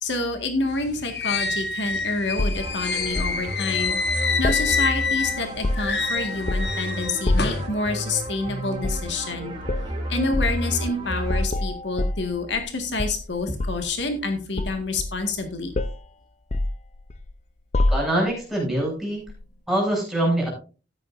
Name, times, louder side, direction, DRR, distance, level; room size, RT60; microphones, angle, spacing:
voice 1, 0.0-9.5 10.1-15.7, left 3 dB, 80° left, 5 dB, 1.8 m, -28 dB
sound 1, 0.7-5.4 5.8-7.7, left 4 dB, 60° left, 1.5 m, -27 dB
sound 2, 2.4-3.4 4.4-5.2 5.5-6.0 6.5-6.8 7.3-7.7 8.8-9.1 9.6-9.9 10.3-10.6 11.2-12.7 13.0-13.9 14.6-15.4 15.7-16.1 16.5-17.3 17.7-18.3 19.3-19.5, left 1 dB, 40° left, 0.5 m, -26 dB
sound 3, 2.5-11.4, equal, 25° right, 3.2 m, -32 dB
voice 2, 17.9-19.2 19.7-20.5, right 1 dB, ahead, -2 dB, 6.8 m, -24 dB
13.5 x 11.0 x 2.6 m, 0.34 s
head